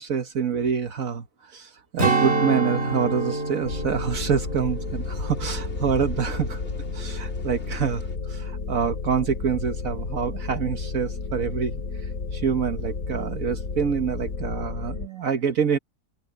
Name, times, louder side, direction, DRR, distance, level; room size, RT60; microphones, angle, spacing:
voice 1, 0.0-6.6 6.9-11.8 12.3-15.8, right 7 dB, 70° right, 1.6 m, -26 dB
Strum, 2.0-6.7 7.1-7.3, right 3 dB, 45° right, 2.5 m, -28 dB
sound 1, 2.9-8.2, left 2 dB, 50° left, 3.9 m, -40 dB
sound 2, 3.6-15.1, left 4 dB, 80° left, 2.6 m, -32 dB
open air
omnidirectional pair, 1.5 m